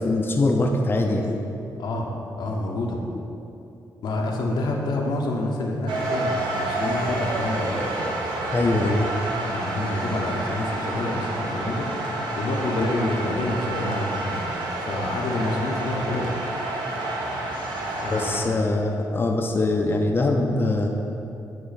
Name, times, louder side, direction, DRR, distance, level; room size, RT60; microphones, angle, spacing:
voice 1, 0.0-1.4 8.5-9.1 18.1-20.9, left 2 dB, 30° left, 1 dB, 0.5 m, -22 dB
voice 2, 2.4-3.0 4.0-7.9 9.4-11.9 12.4-14.4 14.8-16.3 17.9-18.5, left 2 dB, 70° left, 0 dB, 0.8 m, -28 dB
sound 1, 5.9-18.4, right 2 dB, 90° right, 0.8 m, -29 dB
9.0 x 3.1 x 4.1 m, 2.8 s
cardioid pair, 80°, 8 cm